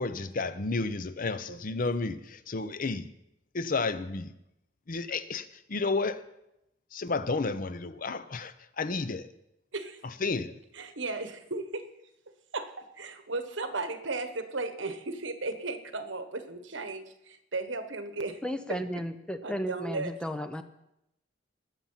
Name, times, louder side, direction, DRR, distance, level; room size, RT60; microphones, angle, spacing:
voice 1, 0.0-3.1 3.5-4.3 4.9-6.2 6.9-9.3 10.2-10.5, left 3 dB, 45° left, 0.7 m, -31 dB
voice 2, 10.7-11.9 12.5-18.4 18.7-18.8 19.4-20.1, right 3 dB, 75° right, 1.4 m, -35 dB
voice 3, 18.4-20.6, equal, 5° left, 0.8 m, -34 dB
21.0 x 7.5 x 5.7 m
head